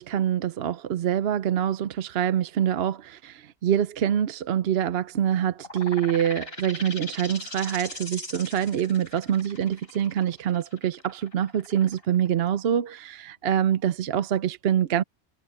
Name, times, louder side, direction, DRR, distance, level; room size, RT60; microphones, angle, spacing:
voice 1, 0.0-15.0, right 9 dB, 65° right, 0.9 m, -25 dB
sound 1, 5.6-12.9, left 2 dB, 60° left, 4.6 m, -40 dB
omnidirectional pair, 1.1 m